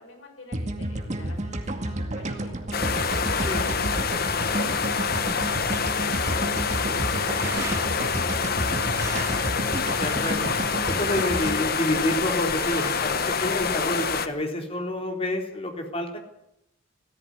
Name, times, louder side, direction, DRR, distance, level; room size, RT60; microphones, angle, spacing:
voice 1, 0.0-2.7 3.2-8.9, left 2 dB, 80° left, 2 dB, 7.1 m, -47 dB
sound 1, 0.5-12.7, right 1 dB, 35° right, 2.2 m, -31 dB
sound 2, 2.7-14.3, left 5 dB, 50° left, 1.3 m, -26 dB
sound 3, 7.0-14.3, right 2 dB, 15° right, 3.8 m, -43 dB
voice 2, 10.0-10.5 10.9-16.2, left 1 dB, 30° left, 3 dB, 3.7 m, -28 dB
18.0 x 14.5 x 9.8 m, 0.81 s
head